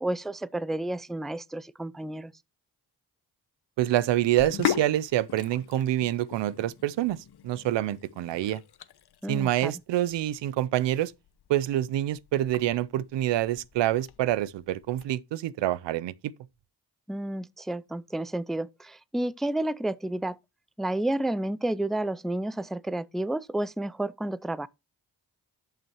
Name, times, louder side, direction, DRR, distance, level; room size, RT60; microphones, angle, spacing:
voice 1, 0.0-2.3 9.2-9.7 17.1-20.4 20.8-24.7, right 1 dB, ahead, 0.4 m, -31 dB
voice 2, 3.8-8.6 9.3-11.1 11.5-16.1, right 13 dB, 85° right, 0.6 m, -27 dB
Sink (filling or washing), 4.2-15.1, left 10 dB, 65° left, 0.9 m, -39 dB
10.5 x 5.8 x 3.0 m
cardioid pair, 55°, 42 cm